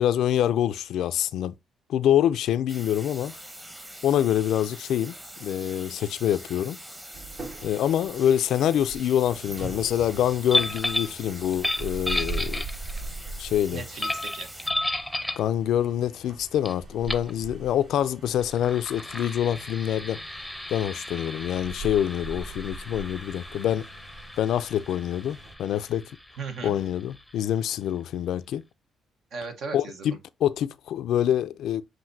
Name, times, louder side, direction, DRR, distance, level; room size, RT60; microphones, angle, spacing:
voice 1, 0.0-1.6 1.9-3.3 4.0-5.1 5.4-6.8 7.6-12.6 13.4-13.8 15.4-20.2 20.7-23.9 24.4-26.0 26.6-28.6 29.7-31.8, left 10 dB, 80° left, 0.4 m, -25 dB
sound 1, 2.7-14.7, equal, 15° right, 1.0 m, -44 dB
sound 2, 7.1-25.5, right 2 dB, 50° right, 1.6 m, -41 dB
sound 3, 10.5-11.2 11.5-13.1 14.0-15.5 16.6-16.7 17.0-17.3 18.4-27.7, left 1 dB, ahead, 0.7 m, -33 dB
voice 2, 13.7-14.5 26.4-26.8 29.3-30.2, right 4 dB, 70° right, 1.1 m, -36 dB
7.5 x 2.6 x 2.6 m
cardioid pair, 90°, 0 cm